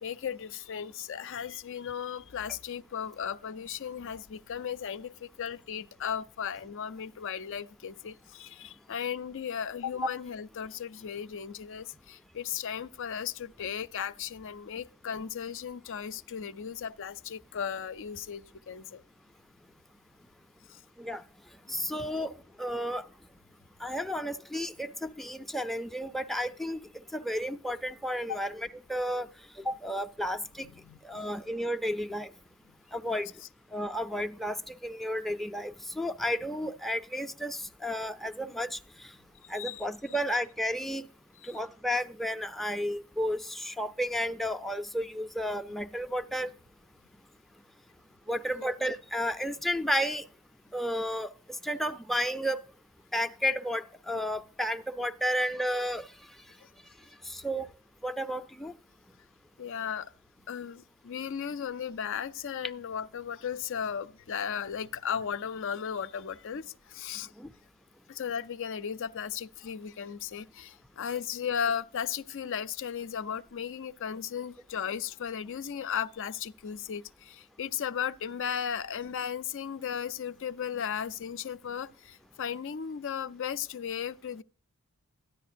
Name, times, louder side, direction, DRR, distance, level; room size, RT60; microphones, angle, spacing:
voice 1, 0.0-19.0 20.7-20.8 21.7-22.0 28.3-28.4 30.8-31.3 33.0-33.2 39.4-40.2 41.4-41.6 48.3-48.4 56.6-56.7 59.6-60.1 60.5-67.3 68.1-84.4, left 8 dB, 60° left, 0.5 m, -36 dB
voice 2, 21.7-23.0 23.8-26.8 27.1-29.3 29.6-30.7 31.0-32.3 32.9-33.3 33.7-38.8 39.5-41.1 41.5-46.5 48.3-50.2 50.7-51.3 51.6-52.6 53.1-56.1 57.3-57.7 58.0-58.7 67.4-67.5, equal, ahead, 0.4 m, -32 dB
13.5 x 10.5 x 2.6 m
head